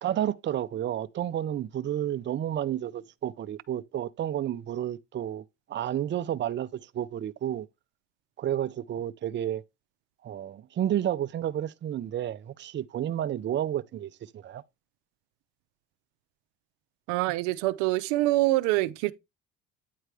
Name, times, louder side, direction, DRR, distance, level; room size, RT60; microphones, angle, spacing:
voice 1, 0.0-5.4 5.7-7.7 8.4-9.6 10.2-14.6, right 11 dB, 35° right, 0.6 m, -31 dB
voice 2, 17.1-19.1, right 18 dB, 85° right, 0.6 m, -25 dB
9.3 x 3.2 x 4.8 m
supercardioid pair, 85°, 30 cm